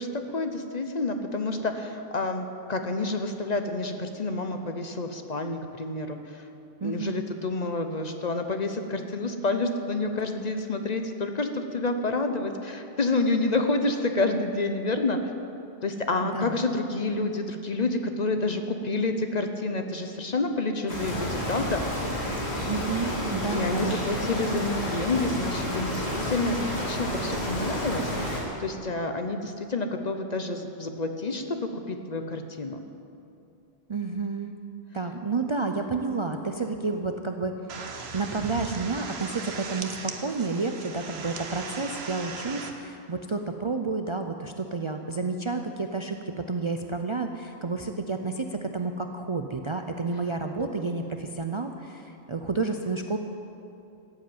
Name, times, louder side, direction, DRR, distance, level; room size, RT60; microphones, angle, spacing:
voice 1, 0.0-6.5 6.8-15.2 15.8-21.8 23.5-28.1 28.6-32.8 50.6-50.7, left 2 dB, 45° left, 6 dB, 0.9 m, -29 dB
voice 2, 6.8-7.3 16.3-16.6 22.7-24.0 33.9-34.6 34.9-37.6 38.1-53.2, right 3 dB, 35° right, 4 dB, 0.5 m, -30 dB
sound 1, 20.9-28.4, left 1 dB, 80° left, 2.9 m, -30 dB
sound 2, 37.7-42.7, right 4 dB, 75° right, 1.3 m, -37 dB
14.5 x 8.0 x 8.8 m, 2.7 s
omnidirectional pair, 1.1 m